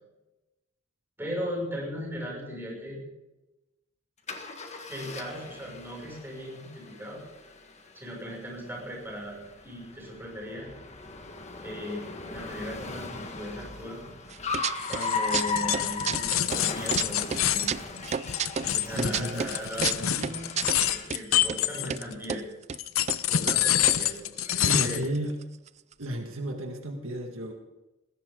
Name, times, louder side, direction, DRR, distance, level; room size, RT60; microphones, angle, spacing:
voice 1, 1.2-3.0 4.9-7.2 7.9-10.7 11.6-14.0 14.9-17.7 18.6-20.5 20.9-22.4 23.3-25.0, equal, 10° right, -2 dB, 6.6 m, -38 dB
Car, 4.3-21.2, left 4 dB, 35° left, 1.6 m, -38 dB
sound 1, 14.3-15.1 15.3-17.0 17.3-21.2 21.5-21.6 21.9-22.4 22.7-22.8 23.1-23.2 23.5-25.2 25.4-25.5 25.7-26.0, right 7 dB, 35° right, 0.4 m, -31 dB
sound 2, 14.8-22.2 22.7-25.1, left 11 dB, 90° left, 0.8 m, -27 dB
voice 2, 18.9-19.5 24.6-25.4 26.0-27.5, right 1 dB, 75° right, 3 dB, 1.9 m, -32 dB
21.0 x 16.5 x 3.9 m, 1.0 s
head